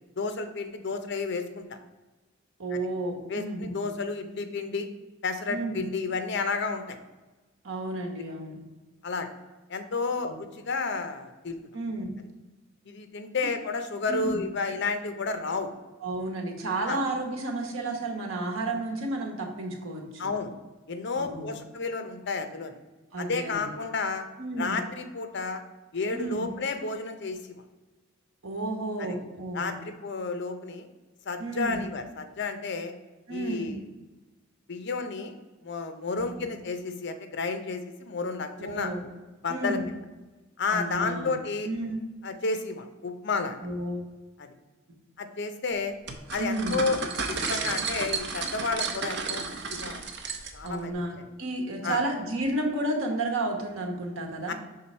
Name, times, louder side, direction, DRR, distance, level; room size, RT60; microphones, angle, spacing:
voice 1, 0.2-1.8 2.7-2.8 3.3-4.9 5.2-7.0 9.0-9.3 9.7-11.6 12.9-15.7 16.9-17.0 20.2-20.5 20.9-22.7 23.2-24.2 24.6-25.6 25.9-27.5 29.0-29.2 29.5-30.9 31.3-32.9 33.3-33.8 34.7-35.4 35.6-38.9 39.4-39.8 40.6-41.7 42.2-43.6 44.4-44.5 45.2-45.9 46.3-47.0 47.3-50.0 50.5-51.3 51.8-52.0 54.5-54.6, left 4 dB, 60° left, 8 dB, 0.6 m, -31 dB
voice 2, 2.6-3.9 5.5-5.8 7.6-8.6 10.2-10.4 11.7-12.1 14.1-14.4 16.0-20.3 21.2-21.6 23.1-23.8 24.4-24.8 26.1-26.5 28.4-29.8 31.4-31.8 33.3-33.7 36.2-36.5 38.6-39.1 39.5-39.9 40.7-41.4 41.6-42.0 43.6-44.0 46.4-46.8 50.6-54.5, right 2 dB, 90° right, 2 dB, 1.2 m, -32 dB
sound 1, 46.1-50.7, right 4 dB, 60° right, 0.7 m, -32 dB
5.7 x 3.9 x 4.3 m, 1.2 s
head